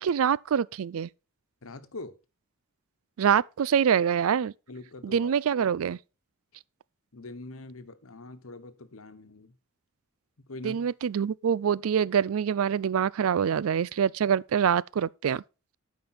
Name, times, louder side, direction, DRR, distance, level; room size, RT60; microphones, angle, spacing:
voice 1, 0.0-1.1 3.2-4.5 5.0-6.0 10.6-15.4, right 8 dB, 85° right, 0.4 m, -25 dB
voice 2, 1.6-2.2 4.7-5.3 7.1-9.5 10.4-10.9, left 2 dB, 85° left, 1.2 m, -43 dB
12.5 x 5.3 x 4.3 m
head